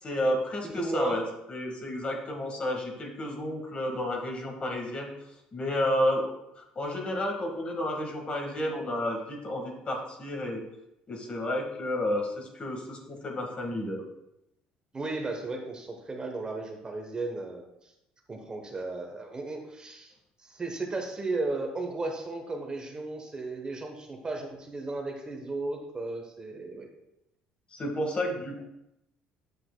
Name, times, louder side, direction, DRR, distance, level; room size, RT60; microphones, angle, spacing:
voice 1, 0.0-1.2 1.5-5.1 5.5-6.3 6.6-10.6 11.1-14.0 27.7-28.6, left 1 dB, 35° left, 1 dB, 1.5 m, -31 dB
voice 2, 0.6-1.2 14.9-17.7 18.3-20.1 20.4-26.9, right 2 dB, 25° right, 2 dB, 0.9 m, -35 dB
7.9 x 5.7 x 2.2 m, 0.85 s
supercardioid pair, 85°, 3 cm